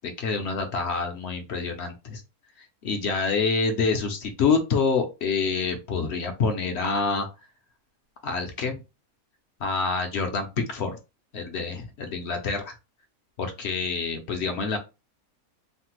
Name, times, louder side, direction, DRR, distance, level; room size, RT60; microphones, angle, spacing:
voice 1, 0.0-2.2 2.6-7.3 8.2-8.8 9.6-11.0 11.3-12.7 13.4-14.8, left 4 dB, 60° left, 5 dB, 0.7 m, -27 dB
3.2 x 2.1 x 2.9 m, 0.27 s
omnidirectional pair, 1.5 m